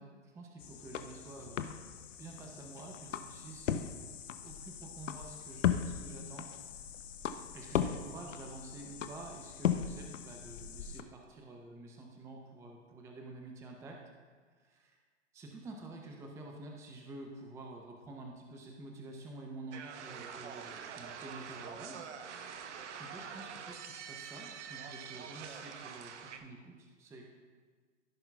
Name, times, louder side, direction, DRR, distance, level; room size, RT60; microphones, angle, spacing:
voice 1, 0.0-1.8 2.2-3.9 4.4-6.5 7.5-14.0 14.5-15.0 15.3-22.1 22.5-27.3, right 2 dB, 10° right, 1 dB, 0.5 m, -49 dB
sound 1, 0.6-11.0, left 9 dB, 80° left, 0.7 m, -38 dB
sound 2, 19.7-26.4, right 7 dB, 65° right, 0.8 m, -45 dB
15.5 x 5.5 x 2.3 m, 1.5 s
hypercardioid pair, 120°, 37 cm